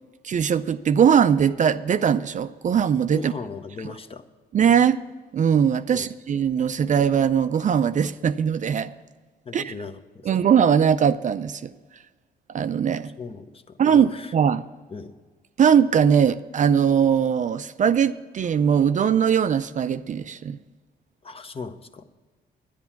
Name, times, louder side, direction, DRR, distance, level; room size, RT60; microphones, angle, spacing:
voice 1, 0.2-3.3 4.5-5.0 5.3-8.9 9.5-9.7 10.3-11.7 12.5-13.1 13.8-14.6 15.6-20.6, right 8 dB, 45° right, 0.4 m, -20 dB
voice 2, 3.1-4.3 5.9-6.1 9.4-10.3 13.2-14.3 14.9-15.2 21.2-22.0, left 4 dB, 30° left, 0.9 m, -38 dB
10.5 x 10.0 x 5.8 m
cardioid pair, 90°, 18 cm